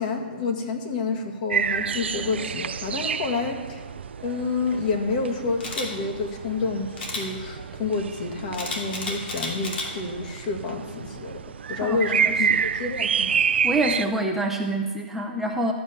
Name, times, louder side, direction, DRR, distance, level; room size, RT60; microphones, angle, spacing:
voice 1, 0.0-3.8 4.2-11.4 11.7-13.3, left 4 dB, 45° left, 3 dB, 1.8 m, -29 dB
sound 1, 1.5-14.0, right 7 dB, 85° right, 0.4 m, -29 dB
Camera, 5.6-5.9 7.0-7.2 8.5-9.9 10.4-10.6, left 2 dB, 70° left, 2.7 m, -31 dB
voice 2, 11.8-12.5 13.6-15.7, right 1 dB, 5° right, 0 dB, 0.6 m, -26 dB
12.5 x 5.6 x 6.9 m, 1.5 s
hypercardioid pair, 155°, 6 cm